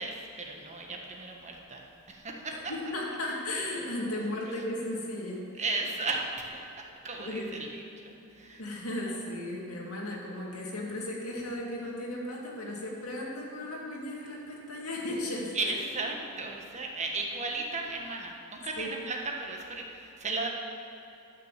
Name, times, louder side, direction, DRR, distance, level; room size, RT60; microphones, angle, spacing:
voice 1, 0.0-1.8 2.1-2.6 5.6-6.6 7.0-8.6 9.1-9.2 15.5-20.5, right 3 dB, 30° right, 0 dB, 1.3 m, -35 dB
voice 2, 2.9-5.5 7.2-7.5 8.6-15.7 18.8-19.0, left 1 dB, 80° left, -2 dB, 2.4 m, -35 dB
12.5 x 6.4 x 7.5 m, 2.9 s
head